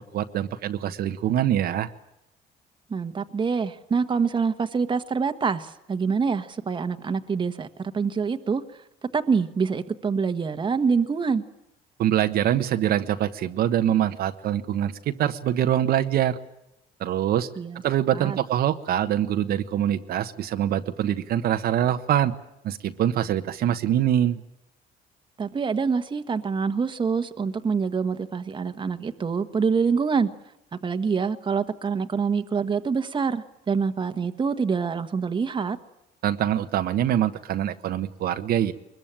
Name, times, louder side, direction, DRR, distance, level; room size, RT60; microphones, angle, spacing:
voice 1, 0.0-1.9 12.0-16.4 17.0-17.5 17.8-22.3 22.6-24.4 36.2-38.7, right 11 dB, 65° right, 1.2 m, -24 dB
voice 2, 2.9-8.6 9.1-11.4 17.6-17.8 18.1-18.4 25.4-30.3 30.8-35.8, right 5 dB, 30° right, 1.4 m, -25 dB
22.5 x 21.5 x 9.0 m
cardioid pair, 110°, 17 cm